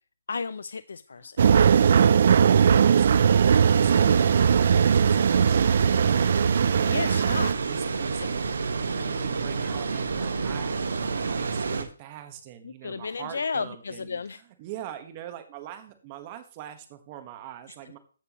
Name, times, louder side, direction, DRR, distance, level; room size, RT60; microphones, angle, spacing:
voice 1, 0.3-1.5 6.9-7.5 8.2-8.3 12.6-14.4, left 5 dB, 75° left, 16 dB, 0.4 m, -33 dB
sound 1, 1.4-7.5, right 7 dB, 50° right, 0.3 m, -19 dB
Water, 3.4-11.8, right 4 dB, 70° right, 1.3 m, -29 dB
voice 2, 7.6-8.5 8.8-18.0, right 11 dB, 25° right, 8 dB, 1.2 m, -44 dB
14.5 x 6.0 x 3.0 m, 0.40 s
hypercardioid pair, 165°, 0 cm